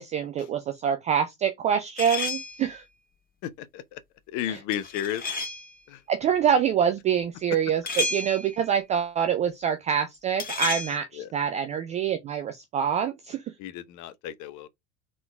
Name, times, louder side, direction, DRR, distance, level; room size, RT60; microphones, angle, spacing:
voice 1, 0.0-2.8 4.4-4.6 6.1-13.4, right 8 dB, 15° right, 0.3 m, -26 dB
sound 1, 2.0-2.7 4.7-5.8 7.9-8.7 10.4-11.0, left 3 dB, 20° left, 1.6 m, -31 dB
voice 2, 3.4-4.0 4.3-5.3 5.9-6.0 11.1-11.3 13.6-14.7, left 11 dB, 40° left, 0.8 m, -33 dB
3.8 x 3.7 x 3.3 m
figure-of-eight pair, 70°, 47 cm